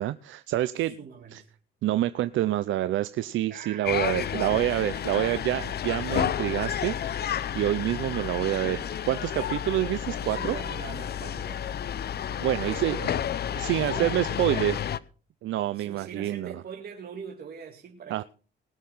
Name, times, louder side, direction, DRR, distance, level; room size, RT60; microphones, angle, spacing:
voice 1, 0.0-1.0 1.3-1.4 1.8-10.6 12.4-13.1 13.6-14.8 15.4-16.6 18.1-18.2, right 13 dB, 75° right, 0.6 m, -27 dB
voice 2, 0.8-1.5 3.5-5.8 10.2-11.7 12.6-13.2 13.8-14.9 15.7-18.2, right 6 dB, 50° right, 2.3 m, -43 dB
sound 1, 3.8-15.0, left 9 dB, 55° left, 0.7 m, -31 dB
19.5 x 6.6 x 5.7 m
cardioid pair, 90°, 20 cm